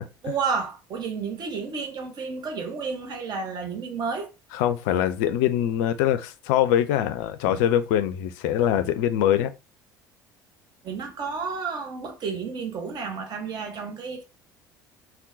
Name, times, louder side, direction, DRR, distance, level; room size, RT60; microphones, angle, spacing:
voice 1, 0.2-4.3 10.8-14.2, right 5 dB, 40° right, 0.9 m, -31 dB
voice 2, 4.5-9.5, left 10 dB, 55° left, 0.4 m, -23 dB
3.6 x 2.3 x 2.5 m
figure-of-eight pair, 60°, 11 cm